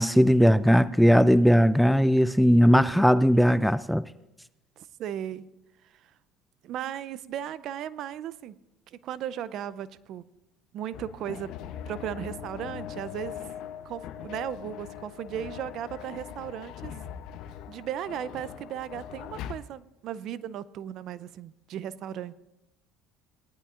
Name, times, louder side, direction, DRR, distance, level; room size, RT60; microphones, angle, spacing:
voice 1, 0.0-4.1, equal, ahead, 0.3 m, -19 dB
voice 2, 2.6-3.1 4.8-5.5 5.9-6.1 6.6-8.6 8.9-10.2 10.7-11.6 11.9-13.4 13.8-16.9 17.7-22.3, right 10 dB, 55° right, 0.5 m, -36 dB
sound 1, 10.9-19.5, left 10 dB, 65° left, 0.8 m, -41 dB
19.0 x 11.5 x 2.5 m
supercardioid pair, 100°, 0 cm